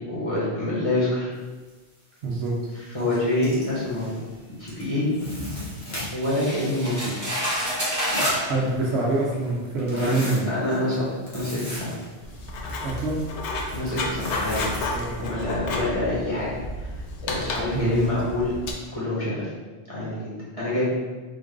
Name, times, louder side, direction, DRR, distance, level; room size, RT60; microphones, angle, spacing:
voice 1, 0.0-1.3 2.9-4.2 4.6-5.0 6.1-7.1 9.9-10.1 10.5-11.0 11.3-11.9 13.7-14.8 15.2-16.5 16.8-16.9 17.2-18.5 18.9-19.5 19.9-21.0, left 1 dB, 30° left, -9 dB, 1.3 m, -26 dB
sound 1, 1.7-1.8 2.2-2.5 2.8-4.3 4.7-6.4 6.8-9.1 9.4-15.3, left 1 dB, 70° left, 1.3 m, -36 dB
voice 2, 2.2-2.5 5.1-5.4 8.1-10.5 12.8-13.2 14.9-15.3 17.7-18.0, right 2 dB, 70° right, -3 dB, 1.0 m, -26 dB
sound 2, 6.2-8.5 9.4-9.5 10.1-10.3, equal, 20° right, 0.7 m, -28 dB
Writing, 12.2-18.7, left 2 dB, 90° left, 0.9 m, -32 dB
3.8 x 2.5 x 3.6 m, 1.3 s
omnidirectional pair, 1.1 m